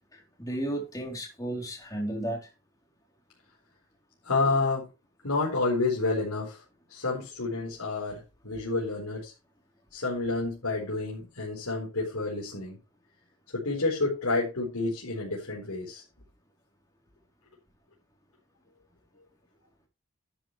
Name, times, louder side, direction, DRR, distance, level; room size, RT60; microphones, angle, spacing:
voice 1, 0.1-2.5, right 1 dB, 15° left, 3.9 m, -34 dB
voice 2, 4.2-4.9 5.2-6.6 6.9-9.3 9.9-12.8 13.5-16.0, left 3 dB, 80° left, 4.5 m, -29 dB
12.0 x 9.0 x 3.4 m
head